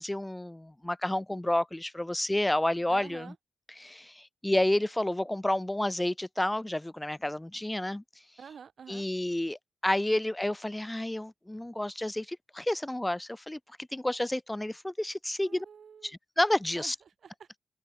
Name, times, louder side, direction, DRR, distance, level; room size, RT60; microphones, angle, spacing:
voice 1, 0.0-3.3 3.8-8.0 8.9-13.6 13.9-15.6 16.0-16.9, left 1 dB, 10° left, 1.7 m, -30 dB
voice 2, 2.9-3.4 8.4-9.0 15.4-16.1 16.8-16.9 17.2-17.6, right 7 dB, 55° right, 2.8 m, -48 dB
open air
wide cardioid pair, 155°, 0 cm